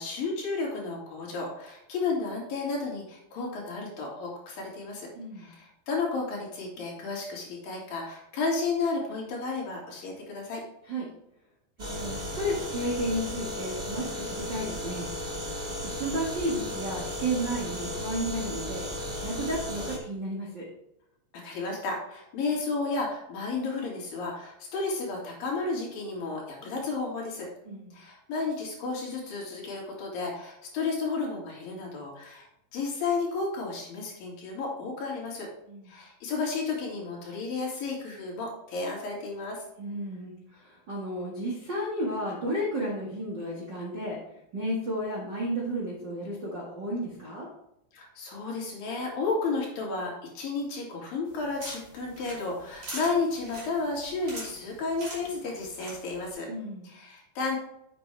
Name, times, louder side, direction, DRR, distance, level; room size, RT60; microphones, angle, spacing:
voice 1, 0.0-5.1 5.4-10.6 21.4-27.5 27.9-32.5 32.7-35.5 35.9-39.6 47.9-56.5 56.8-57.6, left 3 dB, 55° left, -2 dB, 3.7 m, -32 dB
voice 2, 5.1-5.5 10.9-11.1 11.8-15.1 15.8-18.8 19.2-20.6 27.6-27.9 35.7-35.9 39.8-44.2 44.5-47.5 56.5-56.9, right 1 dB, 50° right, -5 dB, 1.3 m, -32 dB
sound 1, 11.8-20.0, left 1 dB, 85° right, 0.5 m, -35 dB
sound 2, 51.3-56.3, right 1 dB, 25° right, 2.8 m, -44 dB
8.0 x 7.7 x 3.4 m, 0.81 s
omnidirectional pair, 5.1 m